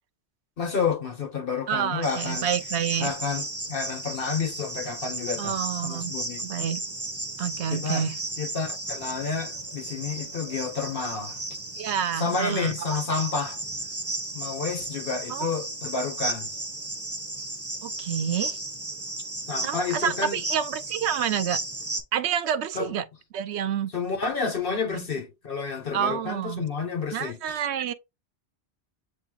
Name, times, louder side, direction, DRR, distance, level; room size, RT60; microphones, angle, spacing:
voice 1, 0.6-2.5 3.0-6.5 7.7-8.0 8.4-11.4 12.1-13.6 14.3-16.5 19.5-20.4 22.7-22.9 23.9-27.6, left 5 dB, 55° left, 1.3 m, -30 dB
voice 2, 1.7-3.1 5.4-6.1 6.4-6.8 7.4-8.1 11.8-12.7 15.3-15.5 17.8-18.6 19.6-21.6 22.1-23.0 23.3-23.9 24.9-25.1 25.9-26.7 27.1-27.9, right 9 dB, 75° right, 0.8 m, -28 dB
Cricket, 2.0-22.0, right 2 dB, 15° right, 0.9 m, -34 dB
7.9 x 2.7 x 2.3 m
omnidirectional pair, 1.2 m